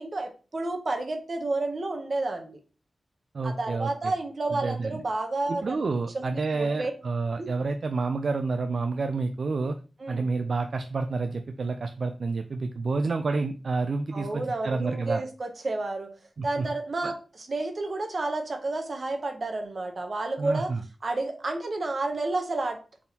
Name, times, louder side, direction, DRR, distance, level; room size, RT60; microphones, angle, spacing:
voice 1, 0.0-2.6 3.4-5.8 6.1-6.9 7.4-7.5 10.0-10.3 14.1-16.1 16.4-20.7 21.0-22.8, right 2 dB, 45° right, 5 dB, 0.8 m, -30 dB
voice 2, 3.3-4.1 4.5-5.0 5.5-9.7 10.1-15.2 16.6-16.7 17.0-17.1 20.4-20.8, right 3 dB, 60° right, 7 dB, 0.3 m, -29 dB
4.2 x 3.5 x 2.8 m, 0.35 s
wide cardioid pair, 140°, 0 cm